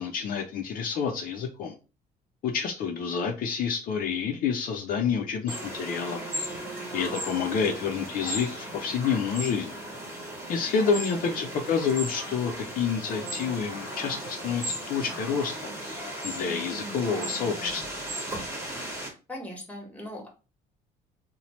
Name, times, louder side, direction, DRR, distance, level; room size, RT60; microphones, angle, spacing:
voice 1, 0.0-1.7 2.4-6.2 6.9-9.7 10.5-15.7 16.2-17.8, left 6 dB, 55° left, 3 dB, 0.5 m, -28 dB
sound 1, 5.5-19.1, right 1 dB, 15° right, 1.1 m, -36 dB
voice 2, 19.3-20.3, left 1 dB, 10° left, 1 dB, 1.1 m, -39 dB
2.8 x 2.1 x 3.0 m, 0.32 s
cardioid pair, 110°, 17 cm